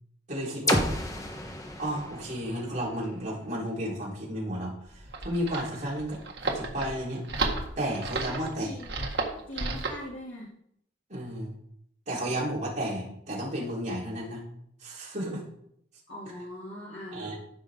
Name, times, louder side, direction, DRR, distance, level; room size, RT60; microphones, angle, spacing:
voice 1, 0.3-0.9 1.8-7.2 7.8-8.7 11.1-11.5 12.1-14.4 14.8-15.4 17.1-17.3, right 1 dB, 45° right, -5 dB, 4.2 m, -33 dB
sound 1, 0.7-4.5, left 1 dB, 20° left, 1.4 m, -32 dB
sound 2, 4.9-10.0, right 3 dB, 70° right, 1.7 m, -32 dB
voice 2, 8.3-8.9 9.5-10.5 16.1-17.3, equal, 90° left, -7 dB, 2.8 m, -40 dB
15.0 x 6.3 x 3.8 m, 0.72 s
head